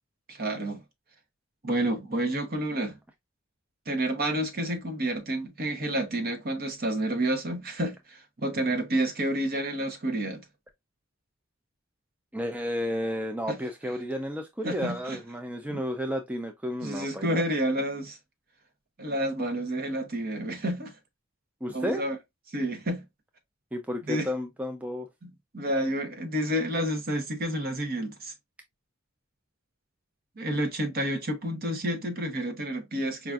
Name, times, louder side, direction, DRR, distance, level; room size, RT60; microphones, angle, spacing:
voice 1, 0.3-0.8 1.6-3.0 3.9-10.4 13.5-13.6 14.6-15.2 15.7-15.8 16.8-18.2 19.0-20.9 21.7-22.2 22.5-23.0 24.1-24.3 25.2-28.3 30.4-33.3, right 1 dB, 50° right, 0.9 m, -29 dB
voice 2, 12.3-17.4 21.6-22.0 23.7-25.1, equal, 5° right, 0.4 m, -32 dB
4.7 x 2.5 x 2.3 m
head